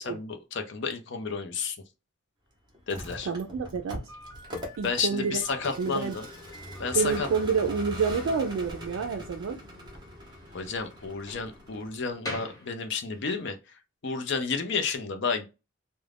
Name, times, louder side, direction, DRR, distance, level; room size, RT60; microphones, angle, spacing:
voice 1, 0.0-1.8 2.9-3.3 4.8-6.3 6.8-7.3 10.5-13.6 14.0-15.4, left 5 dB, 55° left, 0.5 m, -31 dB
Vehicle, 2.7-12.1, left 1 dB, 20° right, 0.8 m, -41 dB
voice 2, 3.3-4.0 4.8-5.4 5.8-6.2 6.9-9.6, right 5 dB, 75° right, 0.3 m, -28 dB
Slam, 4.1-13.4, left 1 dB, 15° left, 0.7 m, -46 dB
2.4 x 2.1 x 3.2 m
head